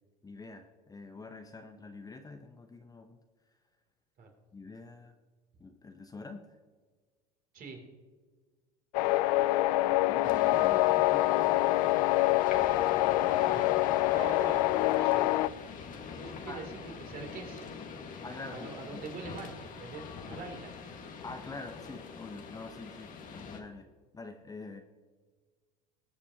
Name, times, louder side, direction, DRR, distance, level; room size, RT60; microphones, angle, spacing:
voice 1, 0.2-3.2 4.5-5.1 5.6-6.5 9.7-12.1 16.5-16.6 18.2-19.0 21.2-24.8, left 3 dB, 15° left, 6 dB, 0.8 m, -46 dB
sound 1, 8.9-15.5, left 17 dB, 75° left, 0.4 m, -26 dB
sound 2, 10.2-23.6, left 5 dB, 40° left, 1.5 m, -44 dB
voice 2, 13.5-13.8 14.1-15.4 16.2-17.7 18.5-20.9, right 4 dB, 45° right, 3 dB, 2.9 m, -44 dB
20.5 x 7.3 x 2.8 m, 1.4 s
hypercardioid pair, 85°, 21 cm